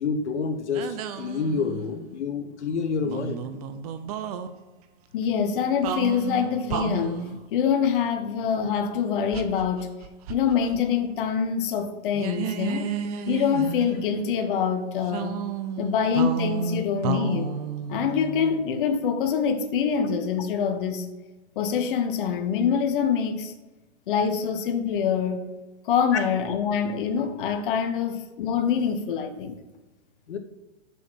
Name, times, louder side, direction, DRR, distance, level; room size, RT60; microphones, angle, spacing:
voice 1, 0.0-3.4 30.3-30.4, left 5 dB, 80° left, 1.0 m, -28 dB
sound 1, 0.7-2.0 3.0-4.5 5.8-7.4 9.3-10.8 11.1-11.2 12.1-14.3 15.1-18.8, right 7 dB, 35° right, 0.6 m, -32 dB
voice 2, 5.1-9.9 10.3-12.9 13.3-15.4 15.8-17.5 17.9-21.1 21.6-23.5 24.1-25.4 25.8-29.6, left 7 dB, 50° left, 1.1 m, -25 dB
7.0 x 6.3 x 6.2 m
hypercardioid pair, 150°, 34 cm